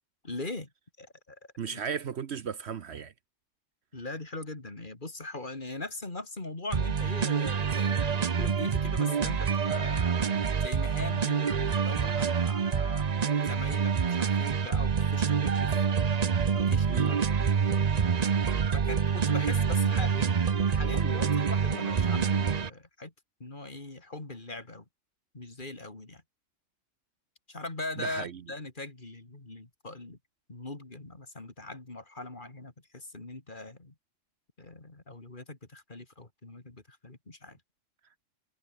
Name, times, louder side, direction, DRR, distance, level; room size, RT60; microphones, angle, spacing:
voice 1, 0.2-0.7 1.0-1.4 1.7-1.8 3.9-13.1 13.4-17.9 18.7-23.1 23.4-24.8 25.3-26.2 27.5-30.2 30.5-33.9 34.6-37.6, left 2 dB, 40° left, 3.1 m, -41 dB
voice 2, 1.6-3.1 12.0-12.3 16.9-17.1 28.0-28.4, right 7 dB, 60° right, 1.1 m, -35 dB
sound 1, 6.7-22.7, right 6 dB, 40° right, 0.8 m, -27 dB
omnidirectional pair, 1.3 m